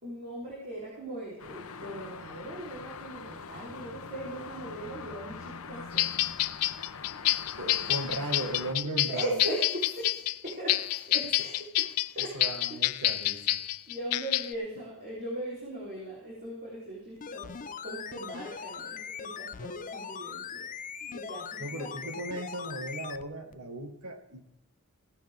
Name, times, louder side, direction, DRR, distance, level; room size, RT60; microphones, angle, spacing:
voice 1, 0.0-6.1 7.8-7.9 9.1-12.4 12.7-12.8 13.9-20.7 21.0-22.1, right 1 dB, 40° right, -6 dB, 3.8 m, -39 dB
sound 1, 1.4-8.7, left 5 dB, 65° left, 0.9 m, -43 dB
sound 2, 6.0-14.5, left 16 dB, 85° left, 0.4 m, -28 dB
voice 2, 7.6-9.4 12.2-13.6 21.6-24.5, right 1 dB, 75° right, 6 dB, 1.8 m, -37 dB
sound 3, 17.2-23.2 23.5-23.6, left 6 dB, 35° left, 0.5 m, -40 dB
17.0 x 9.9 x 3.6 m, 0.90 s
head